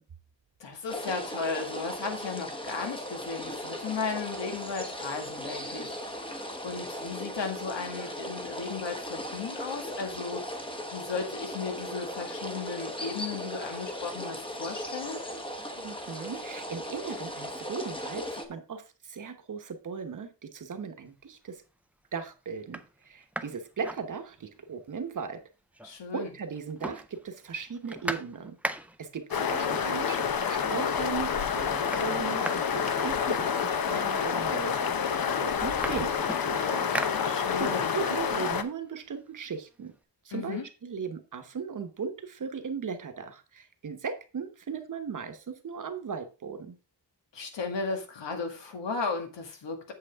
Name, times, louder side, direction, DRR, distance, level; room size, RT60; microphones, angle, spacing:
voice 1, 0.6-6.2 6.6-10.4 10.9-15.2 25.8-26.3 37.2-38.0 40.3-40.6 47.3-49.9, left 4 dB, 90° left, 4 dB, 2.0 m, -35 dB
sound 1, 0.9-18.5, equal, 10° left, 0.9 m, -38 dB
voice 2, 15.8-21.6 22.1-25.4 26.1-28.6 29.0-36.9 37.6-39.9 40.2-46.8, right 6 dB, 45° right, 7 dB, 1.1 m, -37 dB
sound 2, 21.2-21.7 22.2-22.3 22.6-24.7 25.0-25.1 25.3-26.2 26.5-29.2 30.1-30.2 30.6-31.1 31.4-33.8 34.6-34.7 35.0-37.8 38.2-39.9, right 1 dB, 5° right, 0.4 m, -39 dB
sound 3, 29.3-38.6, left 7 dB, 55° left, 0.8 m, -28 dB
7.9 x 7.5 x 3.5 m, 0.32 s
wide cardioid pair, 180°, 42 cm